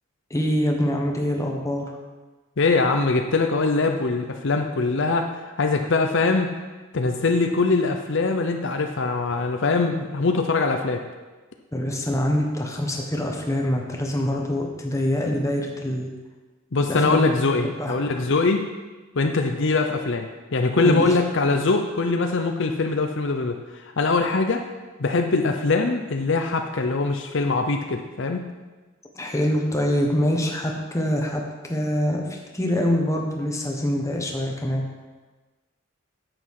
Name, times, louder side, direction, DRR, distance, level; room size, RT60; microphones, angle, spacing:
voice 1, 0.3-1.9 11.7-16.1 16.9-17.2 17.8-18.0 20.8-21.2 29.1-31.4 31.7-34.8, equal, 15° left, 1 dB, 1.2 m, -24 dB
voice 2, 2.6-5.3 5.6-6.5 6.9-11.0 16.7-18.6 19.2-24.6 25.0-28.4, left 3 dB, 60° left, 5 dB, 0.7 m, -22 dB
10.0 x 7.9 x 4.8 m, 1.3 s
head